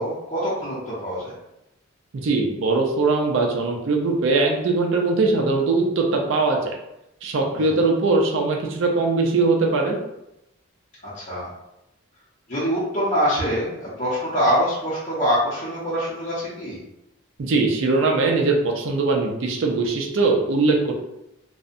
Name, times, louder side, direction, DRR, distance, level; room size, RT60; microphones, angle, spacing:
voice 1, 0.0-1.3 7.5-7.8 11.0-11.5 12.5-16.8, equal, 35° left, -10 dB, 0.6 m, -24 dB
voice 2, 2.1-6.8 7.2-10.0 17.4-21.0, right 3 dB, 60° right, 1 dB, 0.4 m, -21 dB
2.5 x 2.0 x 2.5 m, 0.87 s
head